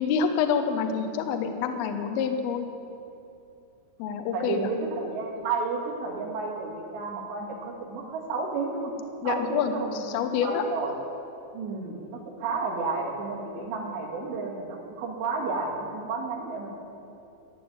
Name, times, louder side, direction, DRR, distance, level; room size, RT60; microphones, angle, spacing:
voice 1, 0.0-2.7 4.0-4.7 9.2-10.6, left 6 dB, 80° left, 6 dB, 2.2 m, -27 dB
voice 2, 4.3-8.9 9.2-10.9 11.5-16.7, right 4 dB, 65° right, -4 dB, 4.1 m, -32 dB
14.5 x 8.5 x 7.9 m, 2.8 s
omnidirectional pair, 5.6 m